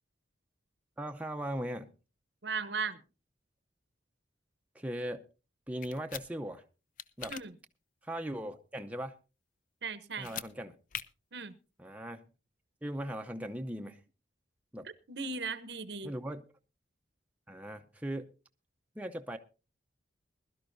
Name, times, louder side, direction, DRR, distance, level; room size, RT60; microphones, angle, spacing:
voice 1, 1.0-1.9 4.7-5.2 5.7-6.6 7.2-7.3 8.0-9.2 10.2-10.8 11.8-12.2 12.8-14.0 14.7-14.9 16.0-16.4 17.5-18.3 19.0-19.4, right 1 dB, 10° right, 0.6 m, -38 dB
voice 2, 2.4-3.0 7.3-7.5 9.8-10.3 11.3-11.6 14.8-16.1, right 5 dB, 65° right, 0.9 m, -37 dB
sound 1, 5.8-6.3 7.0-7.4 10.1-10.5 10.9-11.0, left 9 dB, 45° left, 0.5 m, -41 dB
21.0 x 12.0 x 2.6 m
head